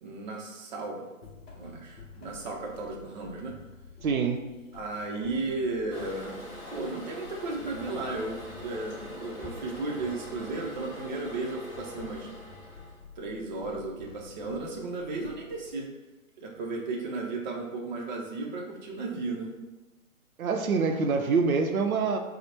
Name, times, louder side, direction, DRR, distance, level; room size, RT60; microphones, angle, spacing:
voice 1, 0.0-1.1 1.5-3.6 4.7-12.3 13.2-15.9 16.4-19.5, right 3 dB, 35° right, -1 dB, 0.5 m, -35 dB
sound 1, 1.2-15.7, left 4 dB, 45° left, 0.7 m, -50 dB
voice 2, 4.0-4.5 20.4-22.2, right 4 dB, 80° right, 5 dB, 0.5 m, -25 dB
Toilet flush, 5.9-13.0, left 1 dB, 10° left, 0.7 m, -43 dB
4.3 x 2.1 x 2.8 m, 1.1 s
figure-of-eight pair, 135°, 42 cm